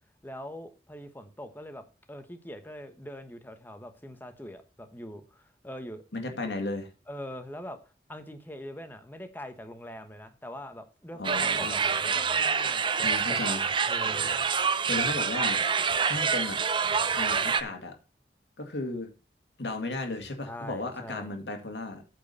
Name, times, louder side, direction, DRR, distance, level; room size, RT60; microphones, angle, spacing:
voice 1, 0.2-6.0 6.3-6.5 7.1-7.8 8.1-13.6 13.9-14.3 20.4-21.3, equal, 10° left, 8 dB, 1.1 m, -43 dB
voice 2, 6.1-6.9 11.2-11.8 13.0-13.6 14.9-15.7 16.0-16.6 17.1-17.9 18.6-19.1 19.6-22.0, left 2 dB, 85° left, 5 dB, 2.0 m, -34 dB
sound 1, 11.2-17.6, right 6 dB, 30° right, 0.6 m, -26 dB
8.6 x 4.6 x 6.7 m, 0.32 s
head